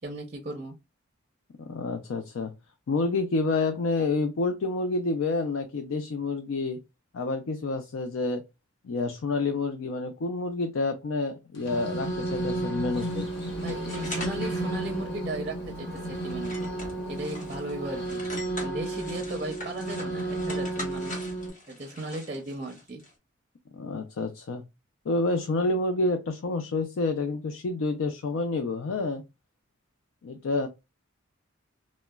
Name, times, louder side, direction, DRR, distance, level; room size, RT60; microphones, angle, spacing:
voice 1, 0.0-0.8 13.5-16.5 17.1-18.2 18.6-21.1 21.7-23.0, right 2 dB, 35° right, 0.5 m, -36 dB
voice 2, 1.6-2.5 2.9-6.8 7.1-8.4 8.8-13.3 23.7-24.6 25.1-29.2 30.2-30.7, left 3 dB, 80° left, 0.4 m, -28 dB
sound 1, 11.5-21.5, right 2 dB, 60° left, 0.9 m, -33 dB
sound 2, 12.9-14.4 14.8-14.9 15.5-15.6 16.0-17.7 18.0-23.1, left 1 dB, 40° left, 1.1 m, -42 dB
Bird, 12.9-18.1, equal, ahead, 1.0 m, -47 dB
3.8 x 2.0 x 2.2 m
head